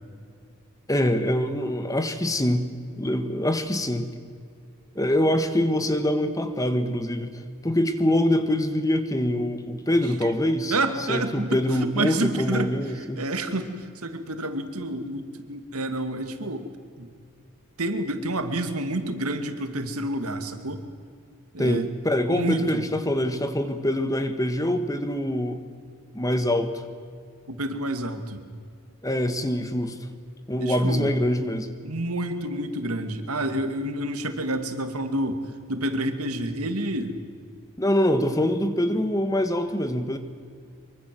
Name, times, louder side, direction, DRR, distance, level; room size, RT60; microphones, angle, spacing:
voice 1, 0.9-2.7 3.0-4.1 4.9-10.8 11.1-13.2 21.6-25.7 26.1-26.7 29.0-30.0 30.5-31.7 37.8-40.2, left 1 dB, 15° left, 9 dB, 1.5 m, -24 dB
voice 2, 10.7-16.7 17.0-17.1 17.8-20.9 21.5-21.9 22.3-22.8 27.5-28.4 30.6-31.1 31.8-37.1, right 1 dB, 90° right, 7 dB, 2.4 m, -29 dB
24.0 x 23.5 x 7.7 m, 2.2 s
head